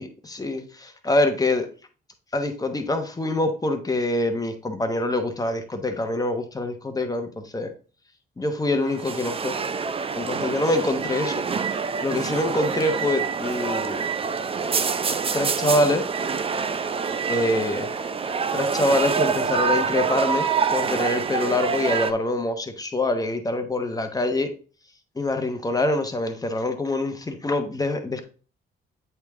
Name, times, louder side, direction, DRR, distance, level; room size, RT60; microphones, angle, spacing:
voice 1, 0.0-1.7 2.3-7.7 8.4-9.6 10.2-11.4 12.0-14.1 15.3-16.0 17.3-17.9 18.5-24.5 25.2-28.2, left 2 dB, 20° left, 6 dB, 1.1 m, -25 dB
sound 1, 8.8-22.1, right 5 dB, 30° right, 0.5 m, -26 dB
8.0 x 3.4 x 3.6 m, 0.38 s
cardioid pair, 90°, 20 cm